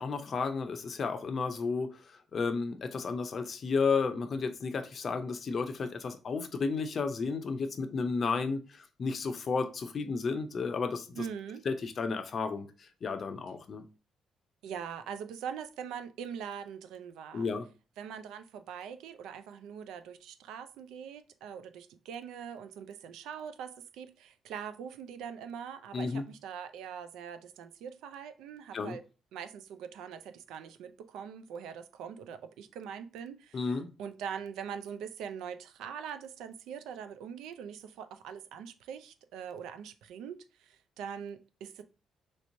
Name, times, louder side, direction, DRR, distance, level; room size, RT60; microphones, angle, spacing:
voice 1, 0.0-11.3 11.6-13.8 17.3-17.7 25.9-26.3 28.7-29.0 33.5-33.9, left 4 dB, 50° left, 0.5 m, -33 dB
voice 2, 11.2-11.6 14.6-17.5 18.0-29.0 29.3-41.8, right 7 dB, 90° right, 0.3 m, -42 dB
3.2 x 3.0 x 2.6 m
cardioid pair, 90°, 0 cm